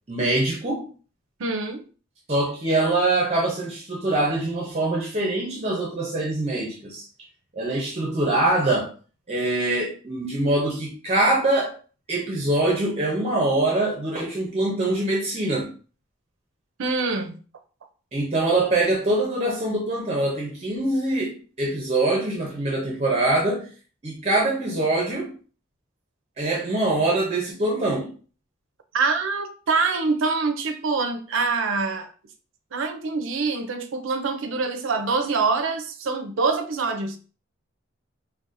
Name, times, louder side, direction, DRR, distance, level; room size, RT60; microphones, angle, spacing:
voice 1, 0.1-0.9 2.3-7.0 7.6-8.9 9.3-11.8 12.1-15.7 18.1-23.7 24.0-25.4 26.4-28.1, right 2 dB, 30° right, 0.6 m, -24 dB
voice 2, 1.4-1.8 16.8-17.4 28.9-32.1 32.7-37.2, right 4 dB, 75° right, 0.5 m, -25 dB
4.0 x 2.1 x 2.5 m
head